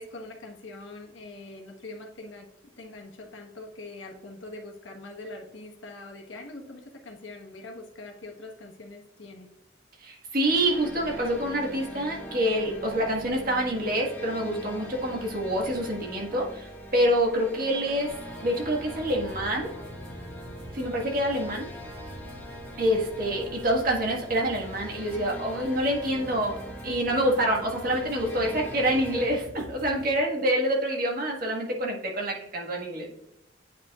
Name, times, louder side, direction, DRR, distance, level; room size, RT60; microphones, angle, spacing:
voice 1, 0.0-2.5 2.8-9.5, left 2 dB, 75° left, 1 dB, 1.3 m, -43 dB
voice 2, 10.0-19.7 20.7-21.7 22.8-33.1, right 1 dB, 45° right, -1 dB, 1.6 m, -27 dB
sound 1, 10.4-29.3, equal, 10° left, 1.4 m, -42 dB
sound 2, 18.1-30.1, equal, 90° right, 2.2 m, -46 dB
9.3 x 5.0 x 2.4 m, 0.88 s
head